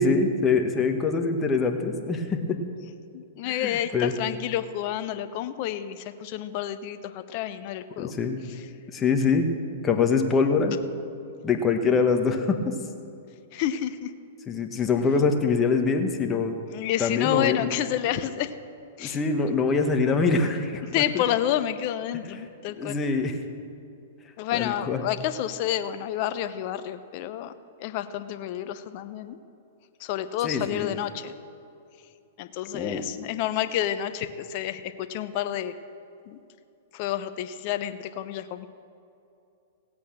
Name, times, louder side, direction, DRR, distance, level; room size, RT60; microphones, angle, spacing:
voice 1, 0.0-2.4 3.4-4.1 8.0-8.4 8.9-9.5 9.8-10.8 11.4-12.8 14.5-16.5 17.0-17.7 19.0-21.2 22.7-23.4 24.5-25.0 30.4-30.9 32.7-33.0, left 4 dB, 20° left, 5 dB, 1.4 m, -24 dB
voice 2, 3.1-8.1 13.5-14.1 16.7-18.5 19.0-19.2 20.9-23.0 24.4-27.5 27.8-29.4 30.0-31.3 32.4-35.7 36.3-36.4 36.9-38.7, left 11 dB, 50° left, 11 dB, 0.8 m, -29 dB
17.0 x 8.4 x 6.2 m, 2.6 s
hypercardioid pair, 115°, 0 cm